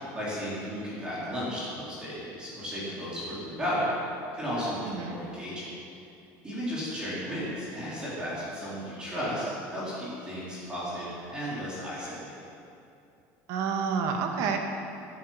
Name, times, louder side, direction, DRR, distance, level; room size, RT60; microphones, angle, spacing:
voice 1, 0.1-3.9 4.3-5.7 6.4-12.3, equal, 15° right, -9 dB, 4.2 m, -34 dB
voice 2, 4.8-5.2 13.5-14.6, right 6 dB, 55° right, 3 dB, 1.9 m, -29 dB
19.5 x 10.5 x 6.0 m, 2.6 s
cardioid pair, 170°, 7 cm